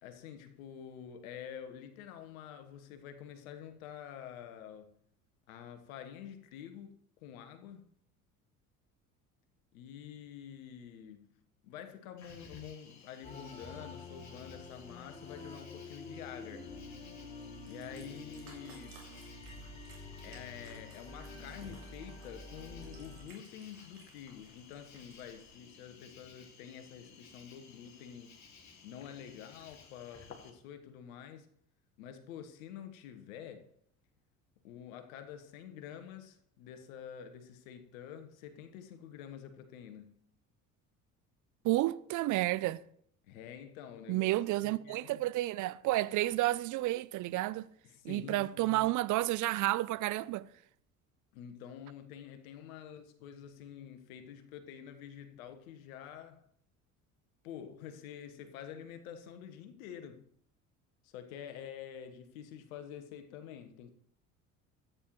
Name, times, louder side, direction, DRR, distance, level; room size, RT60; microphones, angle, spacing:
voice 1, 0.0-5.0 5.5-7.9 9.7-11.4 11.6-16.7 17.6-19.0 20.2-28.4 28.8-31.5 32.0-33.8 34.6-40.2 43.3-44.4 44.6-45.2 47.8-48.9 51.3-56.5 57.4-60.3 61.0-63.9, left 9 dB, 70° left, 1.3 m, -48 dB
Cricket, 12.2-30.5, left 5 dB, 40° left, 2.5 m, -57 dB
sound 1, 13.2-23.2, left 2 dB, 15° left, 2.6 m, -48 dB
Cat, 17.3-25.5, right 3 dB, 90° right, 2.8 m, -60 dB
voice 2, 41.6-42.8 44.1-47.7 48.0-50.4, right 17 dB, 45° right, 0.6 m, -31 dB
13.5 x 9.3 x 3.1 m
hypercardioid pair, 60°, 43 cm